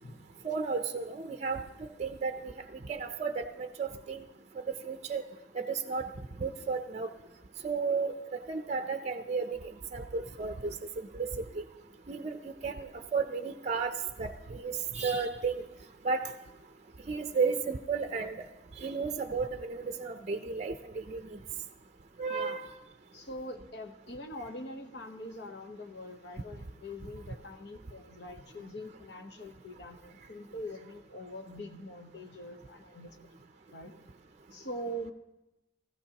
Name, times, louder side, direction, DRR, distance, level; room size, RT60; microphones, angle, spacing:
voice 1, 0.4-4.3 4.8-5.2 5.5-6.1 6.4-7.1 7.6-11.6 12.1-15.6 16.0-16.3 17.1-18.5 18.8-21.4 22.2-22.7, right 4 dB, 40° right, 7 dB, 0.5 m, -33 dB
voice 2, 22.3-22.6 23.1-33.2 33.7-33.9 34.5-35.1, equal, 65° left, 6 dB, 1.0 m, -43 dB
16.5 x 15.0 x 2.9 m, 0.95 s
head